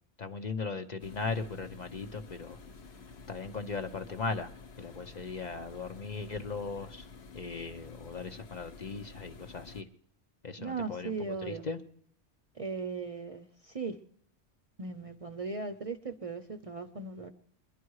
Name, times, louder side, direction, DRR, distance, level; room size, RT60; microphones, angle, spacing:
voice 1, 0.2-2.6 3.3-4.5 4.8-7.1 7.3-9.8 10.4-11.1 11.4-11.8, left 4 dB, 45° left, 0.8 m, -38 dB
sound 1, 1.0-9.8, left 4 dB, 70° left, 1.2 m, -50 dB
voice 2, 10.6-11.7 12.5-14.0 14.8-17.3, right 4 dB, 40° right, 0.6 m, -38 dB
22.0 x 10.5 x 4.7 m
omnidirectional pair, 1.1 m